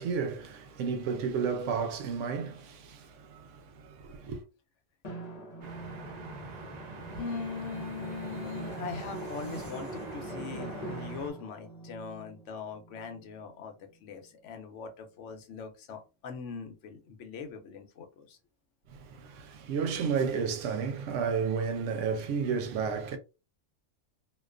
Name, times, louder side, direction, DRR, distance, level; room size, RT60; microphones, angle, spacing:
voice 1, 0.0-4.4 18.9-23.2, right 6 dB, 90° right, 0.9 m, -32 dB
Drum, 5.0-13.3, right 1 dB, 40° left, 0.8 m, -42 dB
sound 1, 5.6-11.3, right 3 dB, 60° right, 0.4 m, -46 dB
sound 2, 6.0-11.9 12.3-12.6, right 2 dB, 35° right, 0.9 m, -53 dB
voice 2, 7.1-13.7 14.0-18.4, left 5 dB, 80° left, 1.0 m, -41 dB
2.4 x 2.2 x 2.4 m
omnidirectional pair, 1.2 m